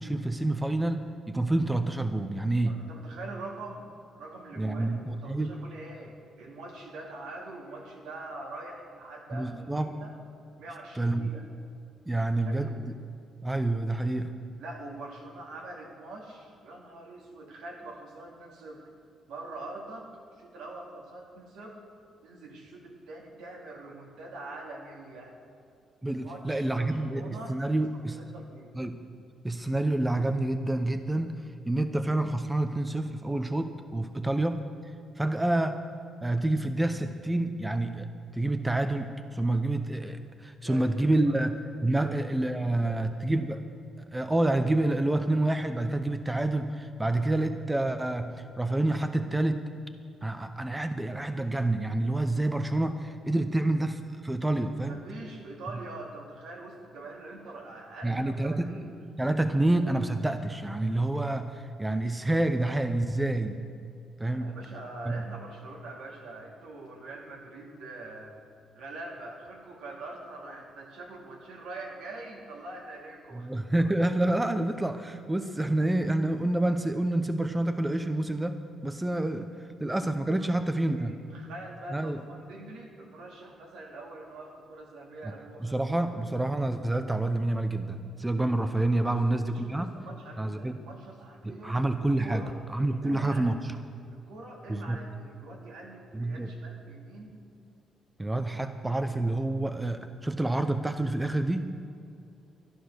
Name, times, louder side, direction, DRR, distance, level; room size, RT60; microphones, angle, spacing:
voice 1, 0.0-2.8 4.6-5.5 9.3-9.9 11.0-11.3 12.1-13.0 13.4-14.3 26.0-27.2 27.5-28.2 28.8-29.0 29.4-34.7 35.2-35.8 36.2-38.1 38.3-43.6 44.1-49.6 50.2-55.0 58.0-58.8 59.2-63.6 64.2-64.5 65.1-65.2 73.3-79.5 79.8-81.1 81.9-82.2 85.2-85.3 85.6-89.9 90.4-90.8 91.4-92.4 92.7-93.6 94.7-95.0 96.1-96.5 98.2-101.6, right 2 dB, 10° right, 8 dB, 0.8 m, -28 dB
voice 2, 2.6-10.1 10.6-11.5 12.2-12.8 14.6-18.9 19.3-21.8 22.2-25.4 26.2-27.8 28.1-28.7 40.6-41.4 41.6-42.1 42.6-43.0 54.8-58.9 64.3-68.3 68.7-73.5 80.4-86.2 89.0-89.2 89.5-91.8 92.2-92.6 93.0-93.7 94.1-97.4, right 2 dB, 85° right, -1 dB, 2.6 m, -44 dB
12.5 x 11.5 x 6.5 m, 2.4 s
cardioid pair, 90°, 0 cm